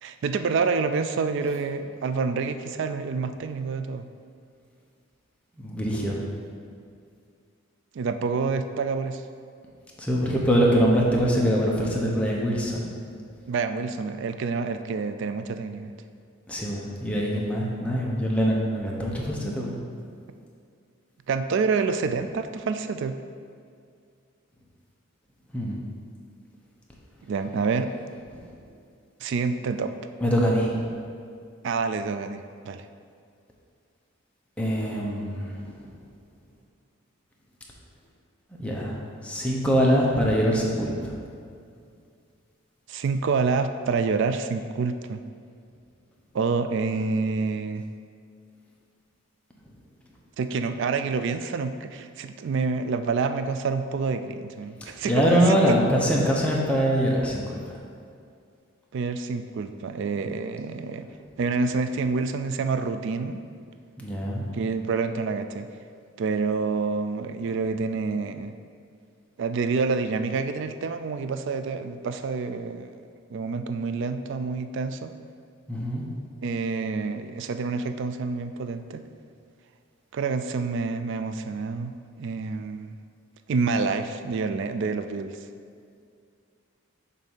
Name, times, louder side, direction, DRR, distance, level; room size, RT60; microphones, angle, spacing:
voice 1, 0.0-4.1 7.9-9.2 13.5-15.9 21.3-23.1 27.2-27.9 29.2-29.9 31.6-32.8 42.9-45.2 46.3-47.8 50.4-55.6 58.9-61.0 61.4-63.4 64.5-65.7 66.2-68.5 69.4-72.9 73.3-75.1 76.4-79.0 80.1-83.0 83.5-85.3, right 4 dB, 60° right, 9 dB, 0.3 m, -28 dB
voice 2, 5.6-6.2 10.0-12.9 16.5-19.8 25.5-25.8 28.3-28.5 30.2-30.9 34.6-35.9 38.6-41.1 55.1-57.8 64.0-64.5 75.7-76.0, equal, 5° left, -3 dB, 0.8 m, -24 dB
7.5 x 2.7 x 5.5 m, 2.3 s
head